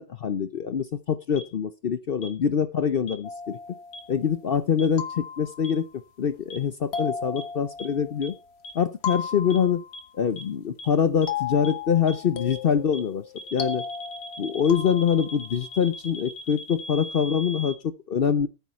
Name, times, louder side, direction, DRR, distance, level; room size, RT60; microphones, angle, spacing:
voice 1, 0.0-3.6 4.1-5.9 6.2-8.3 8.7-9.8 10.1-13.2 13.5-13.8 14.4-18.5, left 7 dB, 65° left, 13 dB, 0.5 m, -24 dB
sound 1, 1.4-1.5 2.2-2.3 3.1-3.2 3.9-4.0 4.8-4.9 5.6-5.7 6.5-6.6 6.9-7.0 7.4-7.5 7.8-7.9 8.2-8.3 8.6-8.7 9.1-9.2 9.5-9.6 9.9-10.0 10.4-10.5 10.8-10.9 11.2-11.3 11.6-11.7 12.1-12.2 12.5-12.6 12.9-13.0 13.4-17.8, left 1 dB, 90° left, 2.1 m, -39 dB
sound 2, 3.2-4.3 5.0-5.9 6.9-8.5 9.0-10.2 11.3-15.6, left 6 dB, 45° left, 1.1 m, -35 dB
13.5 x 8.3 x 4.4 m, 0.29 s
omnidirectional pair, 1.8 m